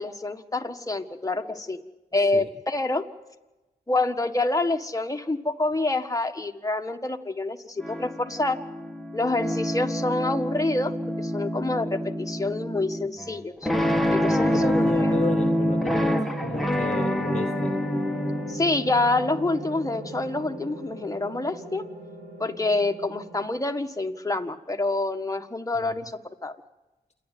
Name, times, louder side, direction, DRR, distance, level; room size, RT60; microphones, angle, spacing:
voice 1, 0.0-1.8 2.1-3.0 3.9-8.6 9.1-13.7 14.1-15.1 18.5-21.9 22.4-26.6, left 2 dB, 20° left, 5 dB, 1.6 m, -27 dB
sound 1, 7.8-18.5, equal, ahead, 1.9 m, -26 dB
sound 2, 13.7-23.4, right 2 dB, 75° right, 3.7 m, -37 dB
voice 2, 14.5-17.8 25.8-26.0, left 5 dB, 40° left, 7 dB, 0.8 m, -34 dB
27.5 x 10.5 x 9.3 m, 1.1 s
cardioid pair, 45°, 17 cm